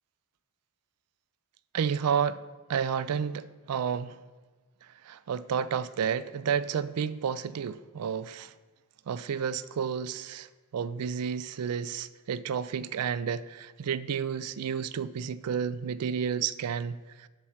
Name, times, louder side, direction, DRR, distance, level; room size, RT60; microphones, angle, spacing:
voice 1, 1.7-2.4 2.7-4.2 4.8-8.5 9.1-17.3, right 7 dB, 90° right, 0.4 m, -31 dB
11.5 x 4.4 x 6.3 m
head